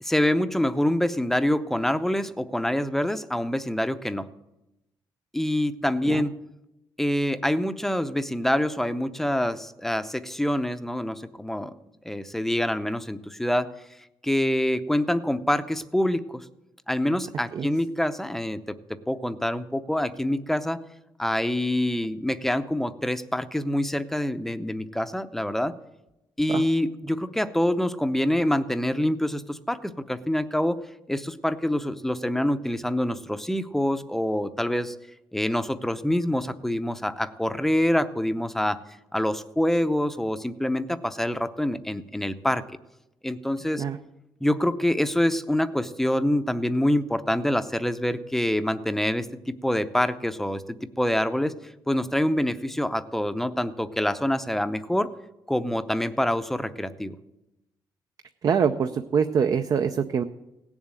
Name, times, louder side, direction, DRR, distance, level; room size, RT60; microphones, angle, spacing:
voice 1, 0.0-4.2 5.3-6.3 7.0-11.7 12.0-13.7 14.2-16.5 16.9-20.8 21.2-25.7 26.4-30.8 31.1-34.9 35.3-38.8 39.1-42.6 43.2-43.8 44.4-50.6 51.0-51.6 51.9-55.1 55.5-57.1, left 1 dB, 5° left, 10 dB, 0.6 m, -26 dB
voice 2, 58.4-60.2, right 7 dB, 50° right, 9 dB, 0.6 m, -24 dB
17.0 x 7.2 x 9.0 m, 0.94 s
cardioid pair, 135°, 8 cm